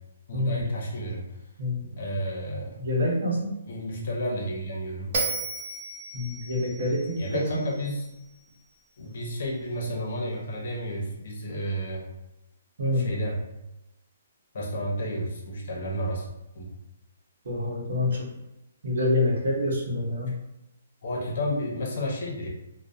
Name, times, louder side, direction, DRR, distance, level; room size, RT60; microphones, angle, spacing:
voice 1, 0.3-1.4 2.0-2.8 3.7-5.2 7.2-8.1 9.0-12.1 12.9-13.5 14.5-16.3 16.5-16.7 21.0-22.5, equal, 55° left, -2 dB, 0.7 m, -31 dB
voice 2, 1.6-2.0 2.8-3.5 6.1-7.4 12.8-13.1 17.4-18.3 18.8-20.3, left 1 dB, 65° right, -3 dB, 0.9 m, -26 dB
Bell, 5.1-8.4, right 3 dB, 35° right, 0.6 m, -34 dB
2.3 x 2.0 x 2.6 m, 0.93 s
hypercardioid pair, 165°, 0 cm